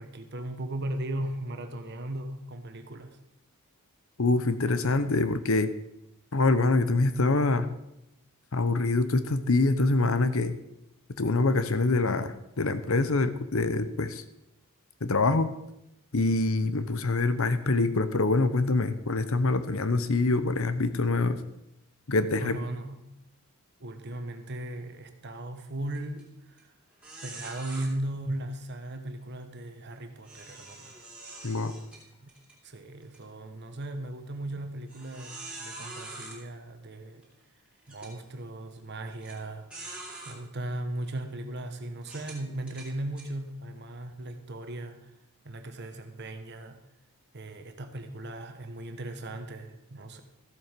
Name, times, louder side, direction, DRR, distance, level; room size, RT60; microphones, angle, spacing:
voice 1, 0.0-3.2 22.4-23.1 23.8-26.7 27.2-31.0 32.2-32.3 32.6-37.3 37.9-45.1 45.4-46.8 47.3-50.2, right 1 dB, 50° right, 7 dB, 1.2 m, -37 dB
voice 2, 4.2-5.7 6.3-7.7 8.5-10.6 11.2-14.2 15.0-15.5 16.1-21.4 22.1-22.6 31.4-31.7, left 3 dB, 65° left, 12 dB, 0.8 m, -25 dB
sound 1, 25.9-26.2 26.6-26.7 27.0-27.9 30.2-32.6 33.0-33.2 33.8-33.9 34.9-36.4 37.2-37.3 37.9-38.1 39.2-39.4 39.7-40.4 41.0-41.2 42.0-43.3, right 2 dB, 5° right, 3.0 m, -44 dB
14.0 x 7.7 x 5.2 m, 0.86 s
head